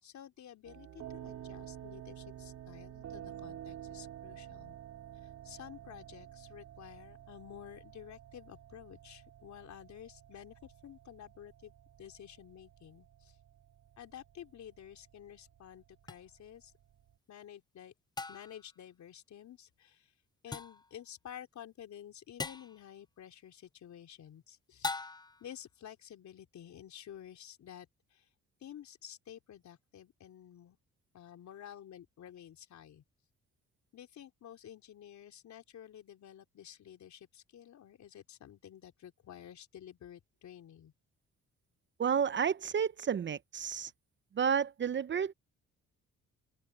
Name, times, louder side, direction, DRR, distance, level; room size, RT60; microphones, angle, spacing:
voice 1, 0.0-4.8 5.2-13.4 14.0-16.7 17.3-17.9 18.3-20.1 20.4-25.0 25.4-28.3 28.6-30.8 31.1-33.0 33.9-40.9, left 10 dB, 65° left, 3.9 m, -51 dB
sound 1, 0.6-17.1, right 11 dB, 65° right, 2.1 m, -51 dB
sound 2, 16.1-16.2 18.2-18.7 20.5-20.9 22.4-22.8 24.8-25.5, left 4 dB, 15° left, 0.4 m, -39 dB
voice 2, 42.0-43.9 44.3-45.3, right 7 dB, 40° right, 0.7 m, -31 dB
open air
cardioid pair, 90°, 30 cm